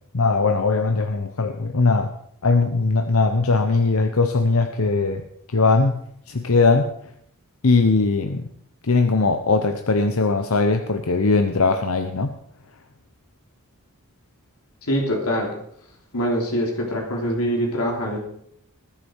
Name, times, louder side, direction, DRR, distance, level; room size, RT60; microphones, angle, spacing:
voice 1, 0.1-2.1 2.4-5.2 5.5-6.0 6.3-6.9 7.6-8.4 8.8-12.4, left 3 dB, 70° left, 7 dB, 0.9 m, -20 dB
voice 2, 14.8-15.5 16.1-18.2, equal, 90° left, -1 dB, 3.4 m, -24 dB
19.5 x 10.0 x 4.7 m, 0.69 s
head